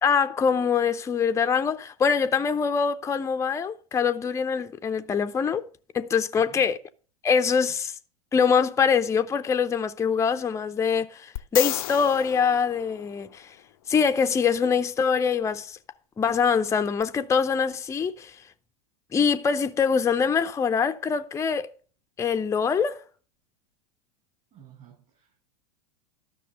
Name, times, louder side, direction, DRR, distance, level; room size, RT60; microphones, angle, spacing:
voice 1, 0.0-5.7 5.9-6.8 7.2-7.9 8.3-13.5 13.9-15.8 16.2-18.3 19.1-21.7 22.2-23.0, left 6 dB, 15° left, 0.6 m, -24 dB
voice 2, 6.4-6.7 24.5-25.4, right 9 dB, 40° right, 6.0 m, -51 dB
sound 1, 11.4-13.6 17.0-17.1, left 15 dB, 60° left, 0.5 m, -33 dB
12.5 x 6.1 x 6.3 m
figure-of-eight pair, 90°, 20 cm